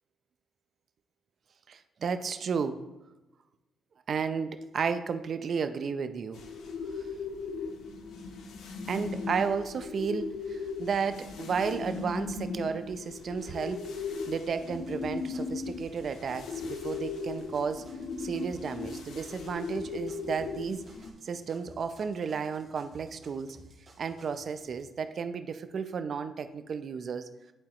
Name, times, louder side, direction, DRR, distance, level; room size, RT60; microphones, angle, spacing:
voice 1, 1.7-2.8 4.1-6.4 7.0-7.1 8.9-13.8 14.3-17.9 18.2-20.9 21.2-23.6 24.0-27.3, right 6 dB, 50° right, 10 dB, 0.5 m, -33 dB
sound 1, 6.3-21.1, left 4 dB, 75° left, 0.8 m, -38 dB
sound 2, 14.7-24.8, right 1 dB, 35° right, 1.5 m, -55 dB
11.0 x 4.1 x 2.9 m, 1.0 s
cardioid pair, 90°, 0 cm